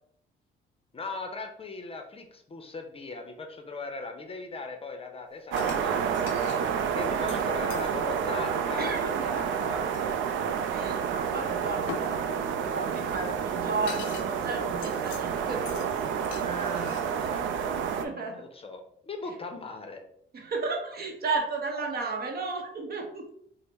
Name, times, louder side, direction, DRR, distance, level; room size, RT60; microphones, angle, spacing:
voice 1, 0.9-6.7 6.9-9.8 11.4-11.5 17.2-17.5 18.2-20.0, left 3 dB, 30° left, 5 dB, 0.5 m, -39 dB
sound 1, 5.5-18.0, right 7 dB, 75° right, 0.4 m, -29 dB
sound 2, 5.6-5.8 6.1-7.9 9.9-10.1 11.9-12.1 13.2-13.3 13.5-14.3 14.6-15.3 15.7-15.9 16.2-17.7, left 9 dB, 90° left, 0.4 m, -43 dB
voice 2, 8.8-9.3 10.7-17.0 17.9-18.5 20.3-23.3, right 4 dB, 50° right, 3 dB, 0.8 m, -34 dB
3.9 x 2.0 x 3.3 m, 0.68 s
cardioid pair, 90°, 20 cm